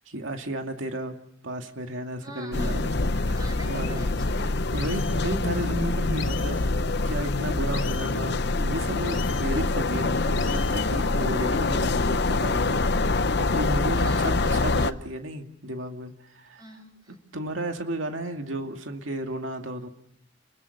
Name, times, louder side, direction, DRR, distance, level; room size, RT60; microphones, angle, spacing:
voice 1, 0.1-1.2 1.4-2.9 3.3-4.0 4.7-12.8 13.1-16.6 17.3-19.9, right 1 dB, 85° right, 4 dB, 2.3 m, -33 dB
voice 2, 2.2-3.1 3.3-5.3 13.9-14.6 16.6-17.2, right 1 dB, 20° right, 4 dB, 7.2 m, -44 dB
sound 1, 2.5-14.9, left 3 dB, 60° left, 0.9 m, -25 dB
sound 2, 3.0-3.1 3.5-3.9 4.8-5.2 6.2-6.5 7.7-8.1 9.0-9.5 10.3-10.9, left 10 dB, 90° left, 2.9 m, -39 dB
29.0 x 21.5 x 6.7 m, 0.75 s
head